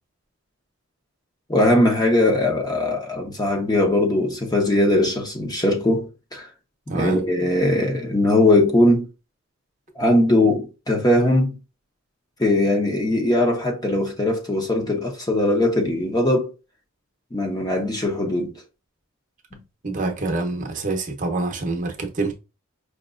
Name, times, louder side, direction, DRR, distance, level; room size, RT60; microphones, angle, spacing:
voice 1, 1.5-6.5 6.9-9.0 10.0-11.6 12.4-16.5 17.3-18.6 19.5-19.6, left 1 dB, 20° left, 0.8 m, -20 dB
voice 2, 6.9-7.2 19.8-22.3, right 3 dB, 40° right, 0.8 m, -26 dB
4.9 x 2.9 x 2.5 m
head